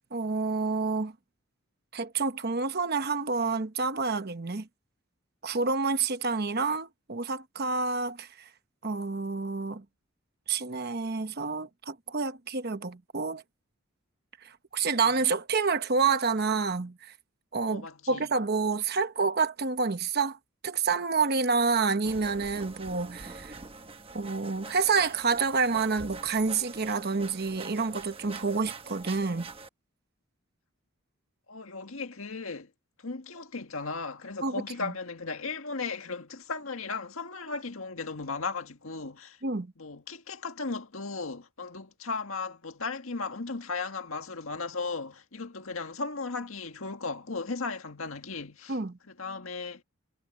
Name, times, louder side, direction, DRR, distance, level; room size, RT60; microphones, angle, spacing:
voice 1, 0.1-1.1 1.9-4.7 5.4-8.5 8.8-9.8 10.5-13.4 14.4-17.1 17.5-20.4 20.6-23.6 24.1-29.5 34.4-34.9 39.4-39.7 48.7-49.0, right 4 dB, 50° right, 1.0 m, -28 dB
voice 2, 17.7-18.3 31.5-32.7 33.0-39.4 39.8-48.8 49.1-49.8, left 4 dB, 75° left, 1.8 m, -36 dB
sound 1, 22.0-29.7, right 3 dB, 25° right, 1.1 m, -45 dB
head